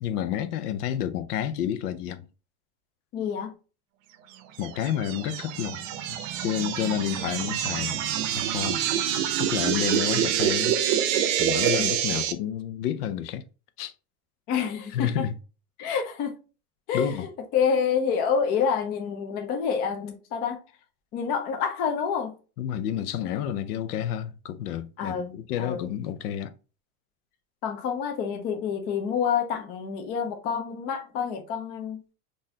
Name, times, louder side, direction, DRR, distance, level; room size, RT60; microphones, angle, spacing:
voice 1, 0.0-2.2 4.6-5.8 6.1-8.0 8.3-8.8 9.4-10.8 11.2-13.4 13.8-13.9 14.9-15.3 15.9-16.0 16.9-17.3 22.6-26.5, left 10 dB, 85° left, 0.7 m, -30 dB
voice 2, 3.1-3.5 10.1-10.2 11.8-11.9 14.5-15.3 15.8-16.3 16.9-20.6 21.1-22.3 25.0-25.9 27.6-32.0, left 7 dB, 25° left, 0.3 m, -28 dB
sound 1, 4.6-12.3, right 10 dB, 60° right, 0.6 m, -26 dB
3.9 x 2.6 x 2.7 m
supercardioid pair, 150°, 45 cm